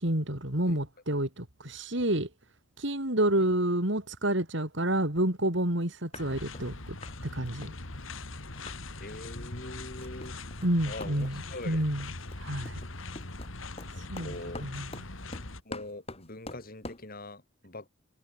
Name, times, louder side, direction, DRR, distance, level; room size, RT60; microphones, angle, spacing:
voice 1, 0.0-2.3 2.8-7.0 7.3-7.7 10.6-12.1 12.4-12.8 14.1-14.3 14.6-15.0, right 1 dB, 60° right, 4.2 m, -29 dB
sound 1, 5.8-5.9 6.1-6.7 7.0-7.2 7.5-8.8 9.1-9.4 9.7-17.1, left 2 dB, 30° left, 5.3 m, -46 dB
sound 2, 6.1-15.6, left 2 dB, 75° left, 2.9 m, -41 dB
voice 2, 9.0-10.3 10.9-11.8 13.9-14.6 15.7-17.9, left 2 dB, 45° left, 3.3 m, -43 dB
head